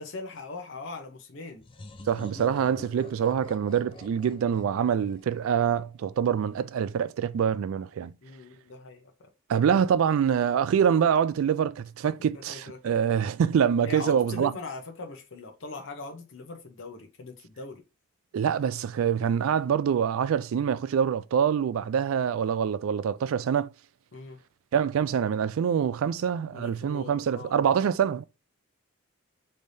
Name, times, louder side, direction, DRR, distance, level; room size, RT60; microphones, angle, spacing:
voice 1, 0.0-1.6 8.2-9.3 12.0-13.0 13.8-17.8 24.1-24.4 26.5-27.7, left 3 dB, 60° left, 0.8 m, -41 dB
sound 1, 1.6-6.2, left 2 dB, 25° left, 0.5 m, -47 dB
voice 2, 2.1-8.1 9.5-14.5 18.3-23.7 24.7-28.2, right 8 dB, 75° right, 0.3 m, -25 dB
5.3 x 3.3 x 2.7 m
head